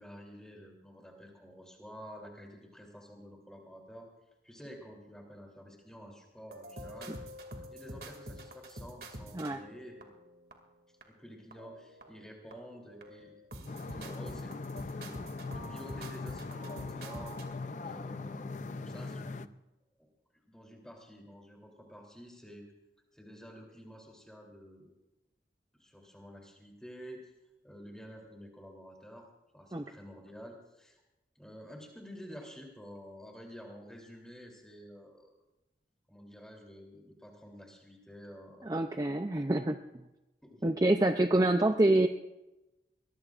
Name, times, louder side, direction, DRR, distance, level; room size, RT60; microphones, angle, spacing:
voice 1, 0.0-4.1 4.4-7.1 7.7-10.1 11.1-13.3 13.9-17.4 17.8-19.5 20.4-22.7 23.1-24.9 25.8-27.3 27.6-29.3 29.5-31.0 31.3-35.3 36.1-38.7 40.4-40.8, equal, 5° left, 0 dB, 3.2 m, -50 dB
sound 1, 6.5-10.5 11.0-11.1 11.5-12.2 12.5-17.5, right 1 dB, 60° right, 2.4 m, -47 dB
sound 2, 13.7-19.5, left 3 dB, 45° left, 0.5 m, -40 dB
voice 2, 38.7-39.8 40.6-42.1, right 1 dB, 20° right, 6 dB, 0.5 m, -26 dB
23.0 x 19.5 x 2.5 m, 1.0 s
head